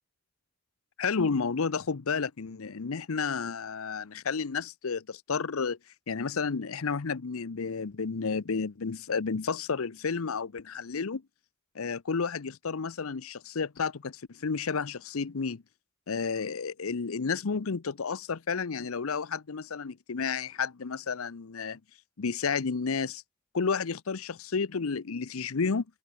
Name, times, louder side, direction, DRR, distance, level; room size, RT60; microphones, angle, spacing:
voice 1, 1.0-5.8 6.1-11.2 11.7-15.6 16.1-21.8 22.2-23.2 23.5-25.8, left 5 dB, 90° left, 0.7 m, -31 dB
head